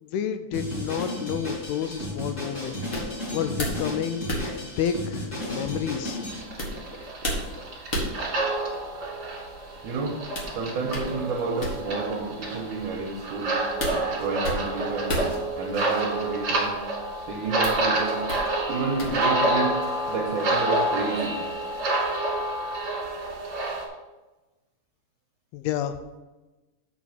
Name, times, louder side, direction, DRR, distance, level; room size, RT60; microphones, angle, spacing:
voice 1, 0.0-2.8 3.1-4.2 4.6-6.2 25.5-25.9, left 8 dB, 80° left, 9 dB, 2.5 m, -30 dB
Drum kit, 0.5-6.4, left 1 dB, 20° left, 2.7 m, -33 dB
sound 1, 1.6-19.7, equal, 65° left, 0.8 m, -36 dB
sound 2, 6.3-23.8, right 2 dB, 40° right, 1.9 m, -28 dB
voice 2, 9.8-10.2 10.5-13.6 14.2-15.2 15.6-16.8 17.3-18.2 18.7-19.8 20.1-21.4, right 4 dB, 70° right, 0 dB, 2.0 m, -30 dB
6.1 x 6.1 x 7.1 m, 1.1 s
omnidirectional pair, 4.6 m